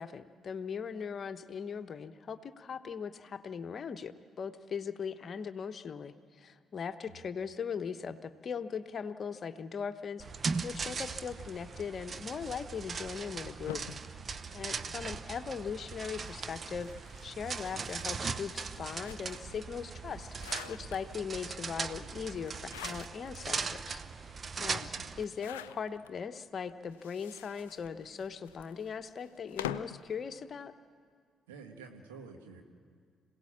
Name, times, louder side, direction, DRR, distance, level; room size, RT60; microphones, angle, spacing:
voice 1, 0.0-13.8 14.5-24.3 24.6-24.9 25.2-30.7, left 6 dB, 50° left, 10 dB, 1.0 m, -39 dB
sound 1, 10.2-25.2, right 5 dB, 40° right, 0.9 m, -39 dB
sound 2, 13.7-15.3 16.1-19.6 20.0-21.4 22.4-23.4 23.9-24.0 24.2-24.3 25.2-26.1 26.8-30.1, left 11 dB, 85° left, 0.5 m, -46 dB
voice 2, 14.7-15.0 24.9-25.4 31.5-32.6, right 5 dB, 85° right, 3 dB, 1.8 m, -51 dB
26.5 x 17.5 x 7.4 m, 2.1 s
hypercardioid pair, 45°, 0 cm